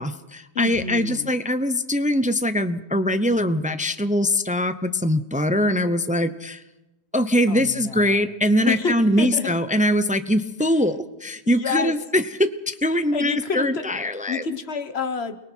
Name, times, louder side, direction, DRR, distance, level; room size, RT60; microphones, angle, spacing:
voice 1, 0.0-6.6 7.1-14.5, left 1 dB, 10° right, 11 dB, 0.7 m, -22 dB
voice 2, 0.5-1.3 7.5-8.2 8.6-9.6 11.5-11.9 12.9-13.8 14.3-15.4, left 5 dB, 70° left, 10 dB, 1.5 m, -28 dB
29.5 x 22.5 x 4.6 m, 0.98 s
omnidirectional pair, 1.1 m